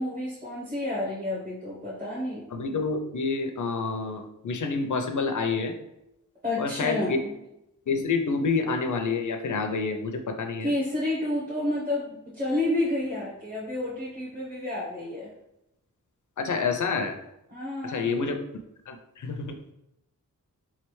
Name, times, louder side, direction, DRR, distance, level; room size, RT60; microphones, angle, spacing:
voice 1, 0.0-2.5 6.4-7.3 10.6-15.3 17.5-18.2, left 1 dB, 25° right, -6 dB, 0.9 m, -30 dB
voice 2, 2.5-5.8 6.6-7.2 7.9-10.7 16.4-17.2 17.8-18.4 18.9-19.7, left 4 dB, 65° left, 5 dB, 0.5 m, -28 dB
3.6 x 3.2 x 3.1 m, 0.87 s
wide cardioid pair, 115°, 33 cm